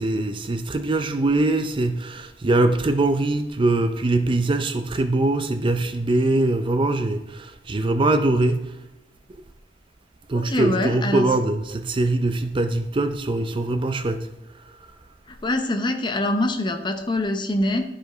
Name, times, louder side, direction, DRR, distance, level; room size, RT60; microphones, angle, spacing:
voice 1, 0.0-8.6 10.3-14.3, right 2 dB, 30° right, 0.5 m, -22 dB
voice 2, 10.3-11.3 15.3-17.8, left 1 dB, 25° left, 0.7 m, -24 dB
12.0 x 5.1 x 3.9 m
head